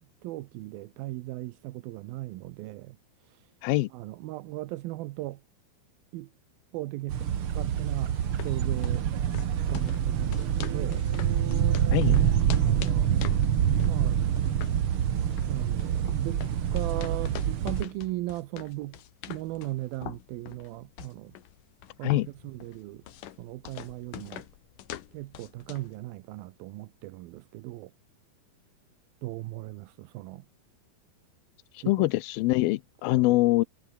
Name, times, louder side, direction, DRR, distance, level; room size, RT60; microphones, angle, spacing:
voice 1, 0.2-3.0 3.3-3.4 3.9-5.4 6.1-6.3 6.7-7.2 7.5-8.1 8.4-9.1 9.5-11.1 12.6-13.1 13.9-14.2 15.5-16.4 16.7-19.0 19.3-21.3 22.0-23.0 23.4-24.4 25.1-27.9 29.2-30.5 31.8-32.1 33.1-33.3, right 18 dB, 80° right, 2.5 m, -37 dB
sound 1, 7.1-17.8, right 9 dB, 55° right, 1.5 m, -26 dB
sound 2, 8.2-26.0, left 12 dB, 65° left, 2.8 m, -44 dB
voice 2, 31.7-33.6, left 19 dB, 85° left, 2.5 m, -24 dB
omnidirectional pair, 4.4 m